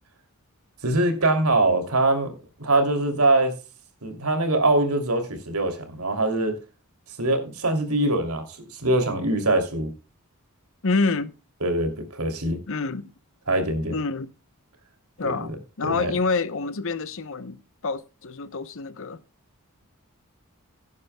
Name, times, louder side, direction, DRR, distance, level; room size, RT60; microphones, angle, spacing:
voice 1, 0.8-2.3 2.6-3.5 4.0-6.6 7.2-8.4 8.7-9.9 11.6-12.6 13.5-13.9 15.2-15.5 15.8-16.1, right 2 dB, 80° right, 2.9 m, -23 dB
voice 2, 10.8-11.3 12.7-13.1 13.9-14.3 15.2-19.2, left 4 dB, 65° left, 0.8 m, -27 dB
17.5 x 9.6 x 2.3 m
head